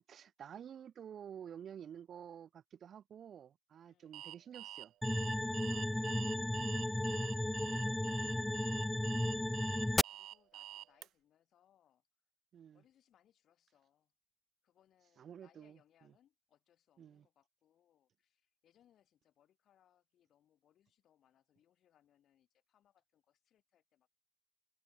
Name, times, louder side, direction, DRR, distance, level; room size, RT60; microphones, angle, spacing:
voice 1, 0.0-4.9 12.5-12.8 15.2-16.1 17.0-17.2, right 9 dB, 60° right, 1.1 m, -51 dB
voice 2, 3.8-4.2 5.4-6.7 7.6-12.0 12.7-14.1 14.6-24.1, left 10 dB, 70° left, 7.7 m, -73 dB
Alarm, 4.1-11.1, right 13 dB, 85° right, 0.7 m, -49 dB
sound 1, 5.0-10.0, left 1 dB, 5° left, 0.4 m, -34 dB
cardioid pair, 90°, 0 cm